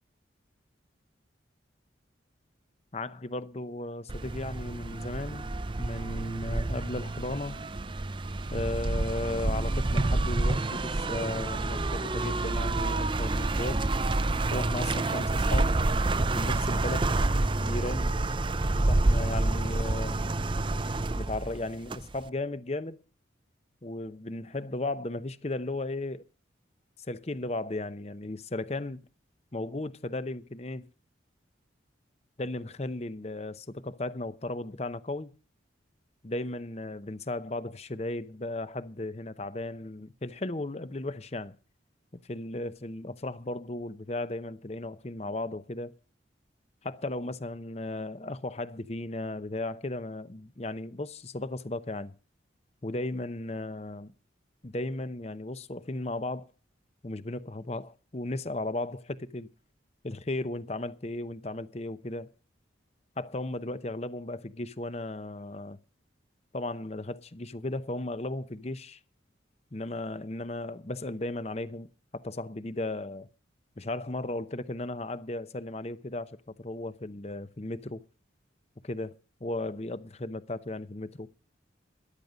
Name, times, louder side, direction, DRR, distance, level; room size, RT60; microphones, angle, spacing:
voice 1, 2.9-5.5 5.8-7.6 8.5-13.8 14.5-15.8 16.3-17.1 17.5-18.2 18.9-20.2 21.2-23.0 23.8-26.2 27.0-29.1 29.5-30.9 32.4-35.3 36.2-41.6 42.3-45.9 46.8-52.1 52.8-54.1 54.6-56.5 57.0-59.5 60.0-62.3 63.2-65.8 66.5-69.0 69.7-73.3 73.8-78.0 78.8-79.1 79.4-81.3, left 2 dB, 35° left, 0.8 m, -35 dB
sound 1, 4.1-22.3, right 2 dB, 25° right, 0.5 m, -28 dB
13.5 x 11.0 x 5.2 m
head